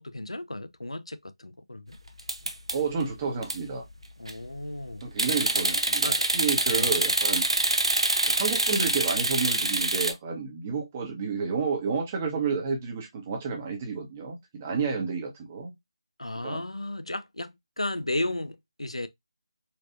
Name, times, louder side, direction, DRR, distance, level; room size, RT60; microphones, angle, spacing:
voice 1, 0.0-2.0 4.2-5.0 6.0-6.3 6.7-6.9 16.2-19.1, left 1 dB, 85° left, 0.5 m, -34 dB
sound 1, 2.2-3.0 3.4-3.6 4.0-4.4 5.2-10.1, right 2 dB, 65° right, 0.8 m, -25 dB
voice 2, 2.7-3.8 5.0-7.4 8.3-15.7 16.4-16.6, right 5 dB, 20° right, 0.9 m, -30 dB
4.3 x 2.5 x 2.4 m
figure-of-eight pair, 160°, 3 cm